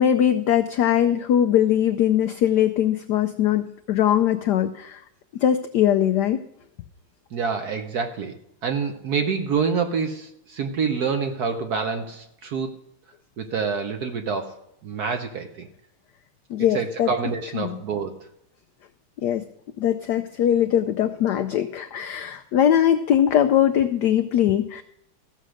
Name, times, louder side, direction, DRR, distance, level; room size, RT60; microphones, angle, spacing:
voice 1, 0.0-5.0 5.3-6.4 16.5-17.1 17.5-17.8 19.2-19.4 19.8-24.8, left 10 dB, 85° left, 8 dB, 0.9 m, -21 dB
voice 2, 7.3-12.7 13.4-15.7 16.7-18.1, right 5 dB, 60° right, 6 dB, 1.0 m, -27 dB
15.0 x 6.4 x 6.3 m, 0.77 s
omnidirectional pair, 2.4 m